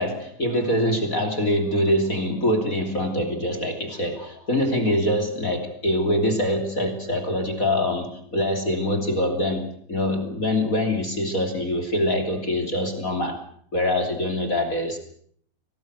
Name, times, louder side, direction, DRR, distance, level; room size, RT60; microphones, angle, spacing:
voice 1, 0.0-13.4 13.7-15.0, left 1 dB, 20° left, 6 dB, 2.7 m, -24 dB
24.5 x 18.5 x 8.0 m, 0.64 s
omnidirectional pair, 5.2 m